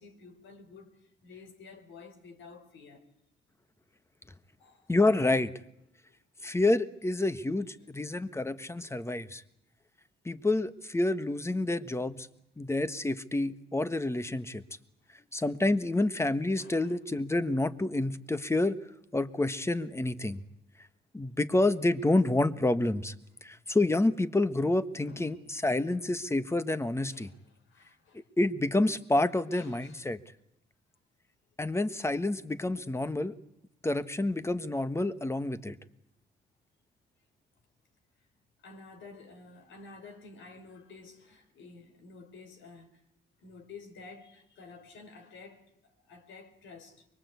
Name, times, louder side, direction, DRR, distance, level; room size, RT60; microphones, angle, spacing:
voice 1, 0.0-3.1 4.6-4.9 6.1-6.5 7.5-9.3 16.6-17.0 25.0-25.4 25.9-26.0 27.1-28.3 29.5-30.1 38.6-43.0 43.4-47.1, left 4 dB, 75° left, 4.8 m, -52 dB
voice 2, 4.9-5.5 6.4-9.4 10.2-12.3 12.6-14.6 15.3-18.8 19.1-20.4 21.1-23.1 23.4-27.3 28.4-30.2 31.6-33.3 33.8-35.8, left 2 dB, 15° left, 1.5 m, -28 dB
24.0 x 23.5 x 8.4 m
cardioid pair, 90°, 20 cm